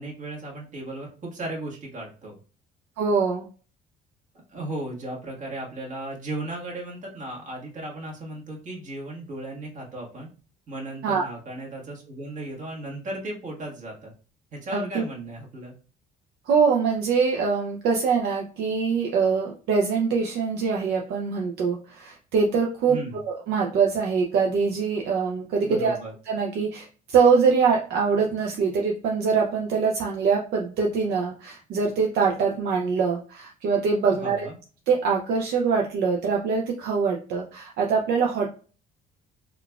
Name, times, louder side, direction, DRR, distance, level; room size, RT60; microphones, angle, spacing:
voice 1, 0.0-2.3 4.5-10.3 10.7-14.1 14.5-15.7 22.9-23.2 25.6-26.1 34.1-34.5, right 1 dB, 50° right, -3 dB, 1.4 m, -35 dB
voice 2, 3.0-3.5 11.0-11.3 14.7-15.0 16.5-25.9 26.3-34.5 34.9-38.5, right 5 dB, 75° right, 0 dB, 0.5 m, -23 dB
3.7 x 2.4 x 2.2 m, 0.39 s
cardioid pair, 110°, 17 cm